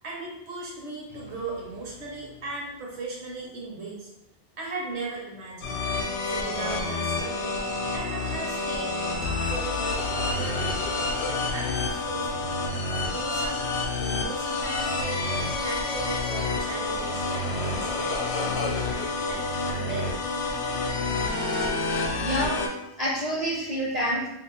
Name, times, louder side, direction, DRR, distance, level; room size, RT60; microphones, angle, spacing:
voice 1, 0.0-4.1 4.6-5.8 6.2-7.5 7.9-10.1 10.3-10.6 11.2-12.4 13.1-15.3 15.6-20.3, right 2 dB, 70° right, -3 dB, 1.1 m, -37 dB
sound 1, 1.1-3.1 9.2-15.0, left 6 dB, 45° left, 0.5 m, -41 dB
sound 2, 5.6-22.7, left 3 dB, 70° left, 0.8 m, -28 dB
voice 2, 22.2-22.7 23.0-24.3, equal, 45° right, -5 dB, 0.6 m, -27 dB
2.9 x 2.1 x 4.1 m, 0.85 s
omnidirectional pair, 1.2 m